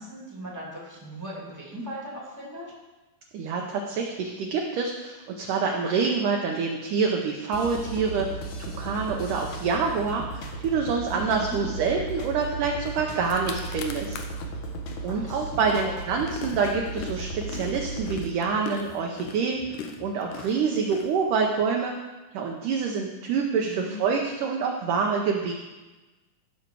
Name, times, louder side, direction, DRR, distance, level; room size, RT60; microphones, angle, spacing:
voice 1, 0.0-2.7 11.1-11.9 15.1-15.9 23.2-23.3 23.6-23.9, right 1 dB, 10° right, -4 dB, 1.0 m, -38 dB
voice 2, 3.3-8.3 8.6-14.2 15.0-19.6 20.0-21.9 22.3-25.5, right 5 dB, 80° right, 1 dB, 1.9 m, -26 dB
sound 1, 7.5-18.2, right 2 dB, 65° left, 1.9 m, -36 dB
sound 2, 12.8-12.9 13.2-14.5 14.9-21.7, left 6 dB, 85° left, 1.8 m, -40 dB
14.0 x 6.2 x 4.6 m, 1.1 s
omnidirectional pair, 4.7 m